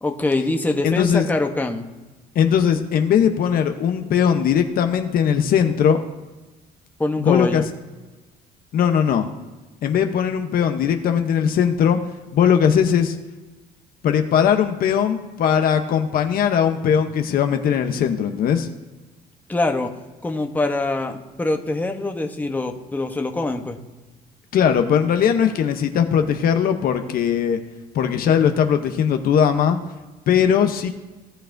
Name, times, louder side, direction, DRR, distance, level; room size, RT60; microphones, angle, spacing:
voice 1, 0.0-1.9 7.0-7.7 19.5-19.9 20.2-23.8, left 2 dB, 10° left, 4 dB, 0.9 m, -24 dB
voice 2, 0.8-1.2 2.3-6.0 7.2-7.7 8.7-9.3 9.8-12.0 12.3-13.2 14.0-18.7 24.5-27.6 27.9-29.8 30.3-30.9, left 8 dB, 60° left, 7 dB, 0.8 m, -19 dB
17.0 x 6.6 x 2.6 m, 1.2 s
cardioid pair, 110°, 17 cm